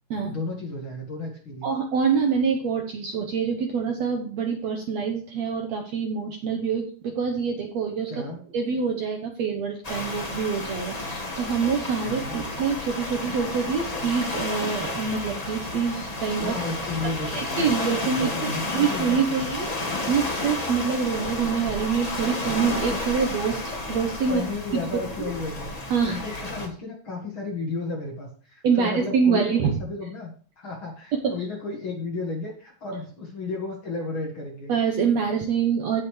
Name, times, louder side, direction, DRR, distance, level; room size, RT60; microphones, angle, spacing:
voice 1, 0.2-1.7 8.1-8.4 12.0-12.3 16.4-17.7 18.0-19.5 24.3-30.3 30.6-34.7, left 3 dB, 45° left, 0 dB, 2.0 m, -33 dB
voice 2, 1.6-8.3 8.5-16.5 17.2-18.3 18.7-19.7 20.1-24.4 24.9-25.3 25.9-26.2 28.6-29.8 34.7-36.0, right 6 dB, 65° right, 3 dB, 1.8 m, -25 dB
sound 1, 9.8-26.7, left 2 dB, 90° left, 0.3 m, -31 dB
17.0 x 5.8 x 3.2 m, 0.43 s
omnidirectional pair, 4.1 m